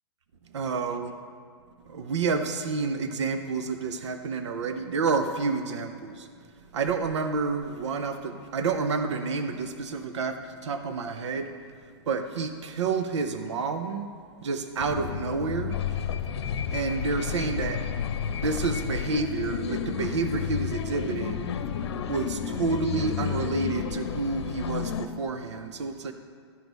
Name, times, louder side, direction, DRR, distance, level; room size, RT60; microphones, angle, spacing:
voice 1, 0.5-1.1 1.9-6.3 6.7-11.5 11.8-14.1 14.4-16.1 16.7-17.8 18.3-21.5 22.1-26.1, right 4 dB, 85° right, 8 dB, 0.7 m, -29 dB
sound 1, 14.8-24.8, left 10 dB, 40° left, 0.4 m, -35 dB
sound 2, 15.7-25.1, left 7 dB, 70° left, 0.8 m, -33 dB
13.0 x 6.2 x 5.3 m, 2.1 s
hypercardioid pair, 170°, 14 cm